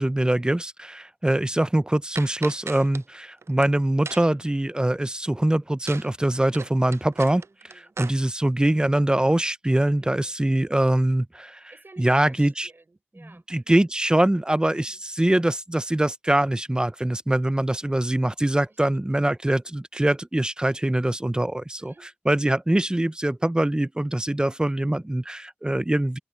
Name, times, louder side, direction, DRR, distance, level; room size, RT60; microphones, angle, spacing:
voice 1, 0.0-7.4 8.0-11.6 12.0-12.7 13.5-21.9 22.3-26.2, right 1 dB, 15° right, 0.6 m, -23 dB
sound 1, 2.1-3.0 3.4-3.7 4.0-4.4 5.9-6.1 6.3-8.1, right 5 dB, 70° right, 0.4 m, -37 dB
voice 2, 7.4-8.0 10.0-10.3 11.7-13.8 14.7-15.0 18.7-18.8 19.1-19.2 21.8-22.2 25.6-25.7, right 2 dB, 50° right, 5.1 m, -53 dB
open air
cardioid pair, 45°, 5 cm